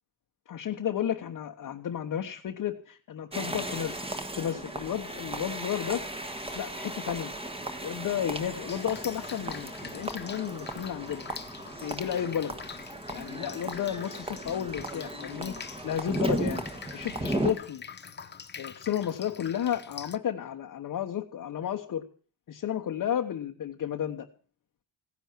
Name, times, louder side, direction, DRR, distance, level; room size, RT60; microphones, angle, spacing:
voice 1, 0.5-4.0 4.3-6.0 6.5-7.3 7.8-11.2 11.8-12.6 13.1-15.5 15.8-16.6 16.9-17.8 18.6-22.0 22.5-24.3, left 9 dB, 45° left, 1 dB, 1.2 m, -32 dB
sound 1, 3.3-17.5, right 1 dB, 10° right, 1.4 m, -36 dB
Drip, 8.7-20.2, left 6 dB, 25° left, 0.7 m, -45 dB
16.0 x 10.5 x 7.4 m, 0.41 s
cardioid pair, 155°, 46 cm